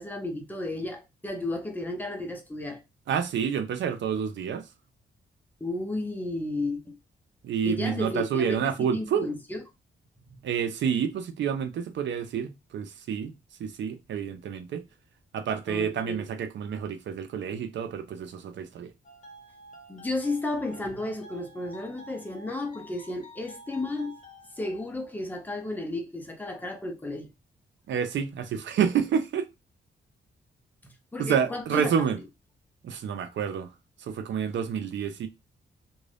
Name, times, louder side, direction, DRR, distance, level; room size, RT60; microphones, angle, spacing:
voice 1, 0.0-2.8 5.6-7.0 7.6-9.6 10.3-10.4 15.7-16.3 19.9-24.2 24.6-27.3 30.8-31.9, left 2 dB, 10° left, 0.7 m, -33 dB
voice 2, 3.1-4.7 7.4-9.3 10.4-13.3 13.6-14.8 15.3-18.9 27.9-29.5 31.2-32.2 32.8-33.7 34.0-35.3, right 7 dB, 75° right, 0.6 m, -29 dB
sound 1, 19.0-24.9, equal, 40° left, 0.9 m, -50 dB
2.6 x 2.5 x 3.3 m
cardioid pair, 120°, 19 cm